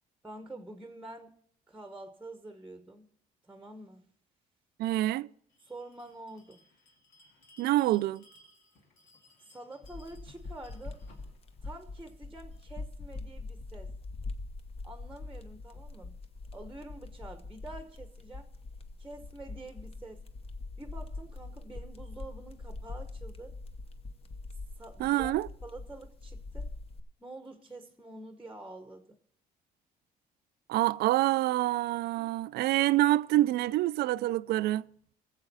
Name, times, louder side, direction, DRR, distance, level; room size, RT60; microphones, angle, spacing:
voice 1, 0.2-1.3 1.7-3.1 3.4-4.1 5.6-6.6 9.4-11.0 11.6-13.9 14.8-16.2 16.5-18.5 19.0-20.2 20.8-23.6 24.8-25.3 25.6-26.7 27.2-29.2, right 2 dB, 5° right, 0.9 m, -47 dB
voice 2, 4.8-5.3 7.6-8.2 25.0-25.5 30.7-34.8, right 16 dB, 70° right, 0.4 m, -26 dB
Bell, 5.5-12.7, left 2 dB, 85° left, 2.3 m, -62 dB
sound 1, 9.8-27.0, left 3 dB, 35° left, 0.9 m, -43 dB
19.5 x 7.5 x 4.1 m
cardioid pair, 110°, 17 cm